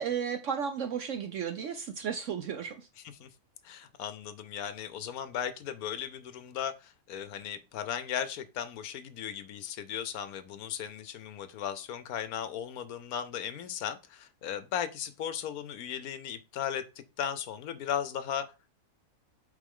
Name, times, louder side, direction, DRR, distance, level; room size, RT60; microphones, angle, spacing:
voice 1, 0.0-2.9, right 7 dB, 65° right, 0.8 m, -34 dB
voice 2, 3.6-16.8 17.2-18.5, left 9 dB, 70° left, 1.0 m, -36 dB
8.3 x 3.7 x 3.7 m
omnidirectional pair, 1.7 m